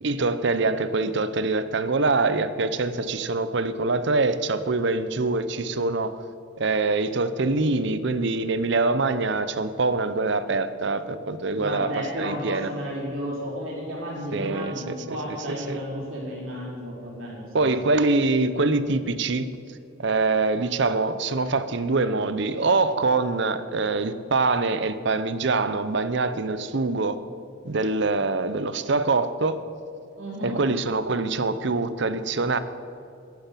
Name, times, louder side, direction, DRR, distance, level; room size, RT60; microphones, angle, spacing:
voice 1, 0.0-6.2 6.6-12.7 14.3-15.8 17.5-19.5 20.0-27.2 27.6-29.6 30.4-32.6, right 3 dB, 60° right, 13 dB, 0.7 m, -24 dB
voice 2, 11.5-17.7 30.2-30.6, equal, 85° right, -5 dB, 3.9 m, -33 dB
11.5 x 10.5 x 7.4 m, 2.6 s
head